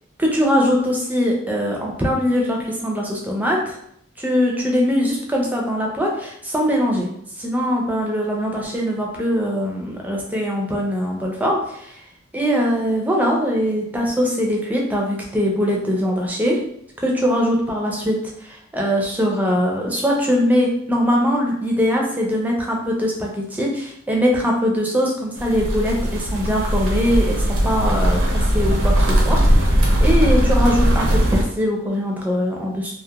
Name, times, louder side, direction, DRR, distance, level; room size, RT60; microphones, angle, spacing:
voice 1, 0.2-3.8 4.2-7.1 7.4-12.0 12.3-16.6 17.0-29.7 30.0-32.9, equal, 10° right, -1 dB, 0.4 m, -21 dB
sound 1, 25.4-31.4, equal, 70° right, 0.5 m, -18 dB
2.8 x 2.0 x 2.3 m, 0.70 s
head